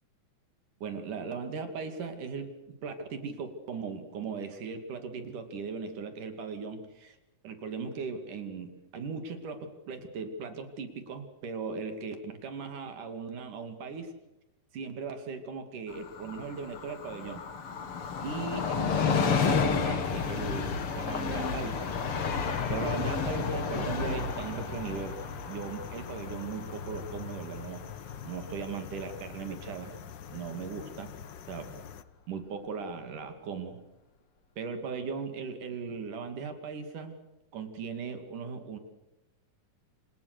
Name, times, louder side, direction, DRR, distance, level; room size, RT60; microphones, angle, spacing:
voice 1, 0.8-7.2 7.4-14.1 14.7-17.4 18.2-27.8 28.2-30.0 30.3-31.1 31.5-31.7 32.3-33.8 34.6-37.1 37.5-38.8, right 5 dB, 75° right, 7 dB, 4.0 m, -38 dB
Train, 15.9-29.2 29.6-29.7, left 6 dB, 45° left, 2.7 m, -32 dB
sound 1, 20.0-32.0, left 8 dB, 70° left, 1.0 m, -45 dB
29.5 x 27.5 x 6.8 m, 0.95 s
omnidirectional pair, 3.7 m